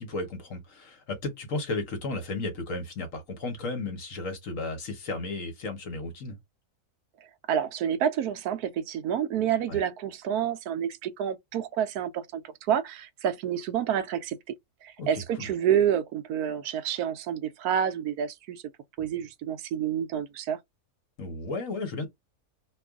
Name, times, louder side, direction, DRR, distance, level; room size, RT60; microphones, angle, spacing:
voice 1, 0.0-6.4 9.7-9.8 15.0-15.5 19.0-19.1 21.2-22.1, left 2 dB, 60° left, 1.3 m, -34 dB
voice 2, 7.5-12.4 12.7-14.6 14.8-18.6 19.0-20.6, right 9 dB, 80° right, 1.1 m, -28 dB
3.0 x 2.4 x 3.5 m
omnidirectional pair, 1.7 m